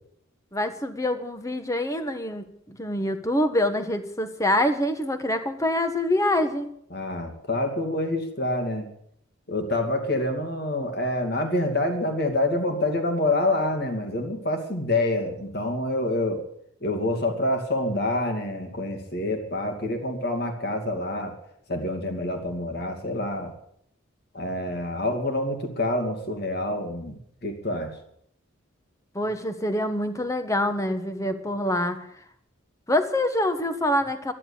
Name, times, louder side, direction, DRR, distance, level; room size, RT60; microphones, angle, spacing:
voice 1, 0.5-6.7 29.1-32.0 32.9-34.3, left 1 dB, 15° left, 8 dB, 1.2 m, -25 dB
voice 2, 6.9-8.9 9.5-16.4 16.8-21.3 21.7-23.5 24.3-27.9, left 1 dB, 50° left, 4 dB, 2.6 m, -27 dB
12.5 x 11.0 x 8.7 m, 0.71 s
head